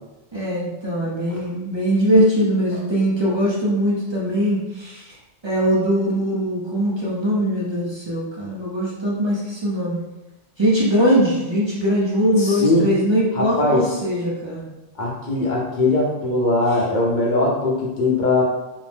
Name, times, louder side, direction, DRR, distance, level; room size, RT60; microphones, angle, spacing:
voice 1, 0.3-5.2 5.4-10.0 10.6-14.6, equal, 35° right, -6 dB, 0.4 m, -21 dB
voice 2, 12.4-12.9 13.3-13.9 15.0-18.4, left 2 dB, 50° left, -4 dB, 0.7 m, -20 dB
2.7 x 2.0 x 3.3 m, 1.0 s
omnidirectional pair, 1.2 m